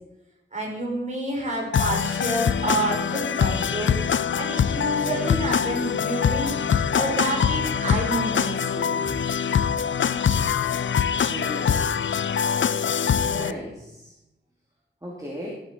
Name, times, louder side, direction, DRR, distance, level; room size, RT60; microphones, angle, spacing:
voice 1, 0.5-3.9 4.4-6.5 6.9-9.1, right 2 dB, 40° right, -2 dB, 4.7 m, -29 dB
sound 1, 1.7-13.5, left 7 dB, 85° left, 0.4 m, -24 dB
voice 2, 11.2-12.2 13.2-14.1 15.0-15.5, equal, 15° right, -4 dB, 2.8 m, -36 dB
16.0 x 7.8 x 4.6 m, 0.91 s
wide cardioid pair, 85°, 19 cm